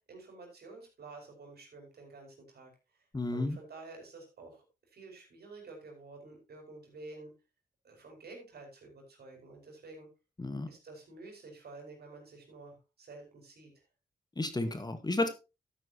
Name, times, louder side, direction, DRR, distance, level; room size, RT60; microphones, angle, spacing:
voice 1, 0.1-2.7 3.3-4.7 4.9-7.3 7.8-10.1 10.7-13.8, right 3 dB, 75° right, 2 dB, 5.3 m, -50 dB
voice 2, 3.1-3.6 10.4-10.7 14.4-15.3, left 2 dB, 25° left, 9 dB, 1.5 m, -32 dB
13.5 x 9.0 x 2.8 m, 0.27 s
cardioid pair, 90°, 17 cm